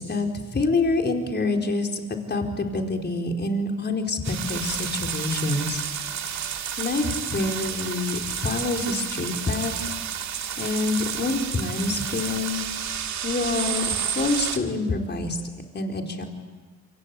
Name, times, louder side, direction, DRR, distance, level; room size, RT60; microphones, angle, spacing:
voice 1, 0.0-5.8 6.8-9.8 10.6-12.6 13.2-15.4 15.7-16.3, left 3 dB, 35° left, 3 dB, 4.4 m, -26 dB
sound 1, 4.2-14.6, right 8 dB, 65° right, 2.2 m, -31 dB
28.0 x 24.0 x 8.5 m, 1.4 s
cardioid pair, 90°, 30 cm